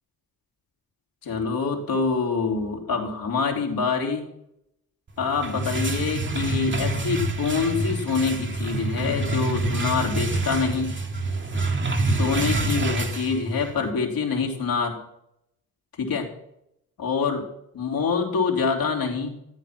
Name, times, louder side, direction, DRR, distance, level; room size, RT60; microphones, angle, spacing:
voice 1, 1.2-4.2 5.2-10.9 12.0-15.0 16.0-16.3 17.0-17.4 17.7-19.4, left 5 dB, 65° left, 1 dB, 3.4 m, -25 dB
sound 1, 5.2-13.8, right 2 dB, 30° right, 1.8 m, -27 dB
13.5 x 8.8 x 6.0 m, 0.78 s
supercardioid pair, 60°, 38 cm